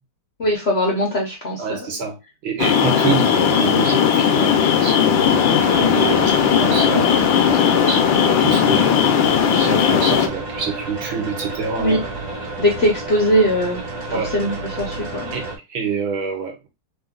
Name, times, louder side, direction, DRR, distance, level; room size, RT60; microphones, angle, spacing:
voice 1, 0.4-1.6 11.8-12.0 12.6-13.8 14.3-15.3, equal, 45° left, 0.8 m, -20 dB
voice 2, 1.6-7.1 7.4-9.2 9.5-12.1 14.1-14.3 15.3-15.4 15.7-16.7, right 5 dB, 70° right, 1.8 m, -27 dB
sound 1, 2.6-10.3, left 8 dB, 70° left, 1.3 m, -17 dB
sound 2, 5.3-15.6, right 2 dB, 40° right, 1.7 m, -31 dB
3.9 x 2.7 x 3.6 m
omnidirectional pair, 2.4 m